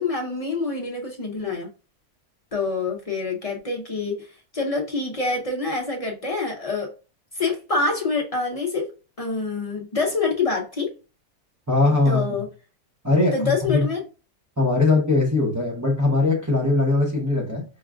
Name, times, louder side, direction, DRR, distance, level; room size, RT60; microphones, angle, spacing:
voice 1, 0.0-1.7 2.5-4.3 4.5-6.9 7.3-8.9 9.2-10.9 12.1-12.5 13.3-14.0, left 3 dB, 45° left, 0.4 m, -26 dB
voice 2, 11.7-12.4 13.0-13.9 14.6-17.6, left 3 dB, 20° right, 0.4 m, -20 dB
5.2 x 2.4 x 2.3 m
omnidirectional pair, 1.6 m